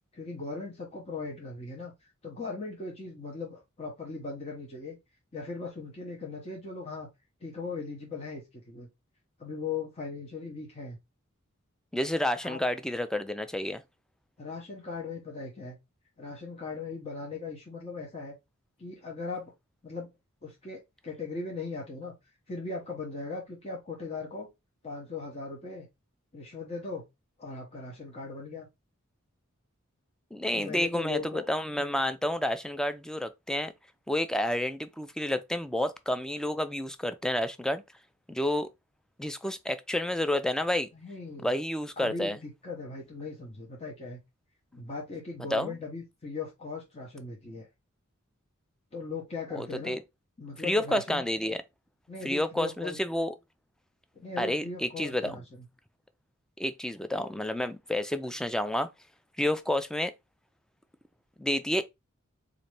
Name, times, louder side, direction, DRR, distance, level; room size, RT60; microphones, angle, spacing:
voice 1, 0.1-5.0 5.3-7.1 7.4-8.9 9.4-11.0 12.4-12.6 14.4-15.8 16.2-18.3 18.8-19.5 19.8-20.1 20.4-22.1 22.5-24.5 24.8-25.9 26.3-27.0 27.4-28.7 30.5-31.5 40.9-41.5 42.0-44.2 44.7-47.7 48.9-50.0 50.4-51.2 52.1-53.0 54.1-55.4, left 4 dB, 30° left, 0.9 m, -39 dB
voice 2, 11.9-13.8 30.3-33.7 34.1-37.8 38.3-38.7 39.2-40.9 41.4-42.4 45.5-45.7 49.5-50.0 50.6-51.6 52.2-53.3 54.4-55.4 56.6-58.9 59.4-60.1 61.4-61.8, left 1 dB, 5° left, 0.3 m, -30 dB
4.1 x 2.5 x 3.1 m
head